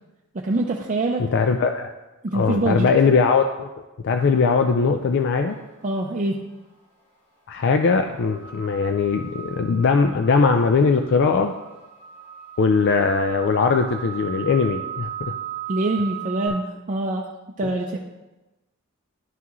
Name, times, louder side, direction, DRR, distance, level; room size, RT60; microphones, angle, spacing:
voice 1, 0.3-1.2 2.2-2.9 5.8-6.4 15.7-17.2 17.6-18.0, right 2 dB, 35° right, 0 dB, 0.5 m, -24 dB
voice 2, 1.2-1.9 2.3-3.7 4.0-5.6 7.5-11.5 12.6-15.3 17.6-17.7, left 5 dB, 55° left, 6 dB, 0.4 m, -20 dB
sound 1, 4.2-4.5 8.2-16.5, right 10 dB, 90° left, 1.4 m, -37 dB
11.0 x 6.0 x 3.0 m, 1.1 s
head